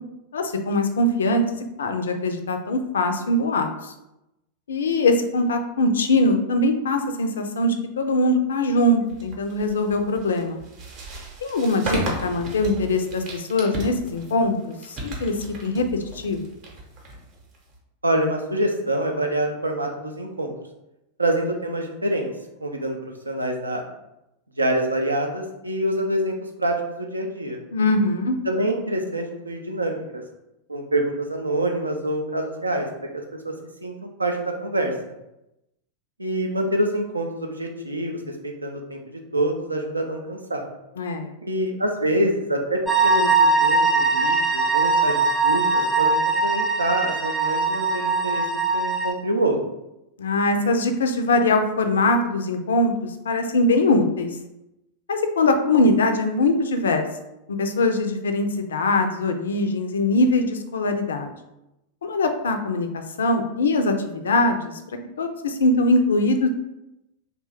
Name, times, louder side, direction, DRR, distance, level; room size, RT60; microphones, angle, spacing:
voice 1, 0.3-3.9 4.7-10.6 11.4-15.3 15.6-15.8 16.1-16.5 27.7-28.4 41.0-41.3 50.2-54.3 55.1-57.1 57.6-61.3 62.0-64.8 65.2-66.5, left 2 dB, 65° left, 6 dB, 0.3 m, -22 dB
sound 1, 9.1-17.8, right 2 dB, 40° right, 0.7 m, -35 dB
voice 2, 18.0-20.5 21.2-22.3 22.6-23.8 24.6-27.6 28.4-30.2 30.7-32.9 33.4-33.5 33.8-34.9 36.2-39.0 39.3-40.6 41.4-49.6, right 1 dB, 80° right, 3 dB, 0.4 m, -26 dB
sound 2, 42.9-49.1, right 3 dB, 10° right, 0.5 m, -21 dB
2.8 x 2.2 x 3.3 m, 0.90 s
figure-of-eight pair, 90°, 0 cm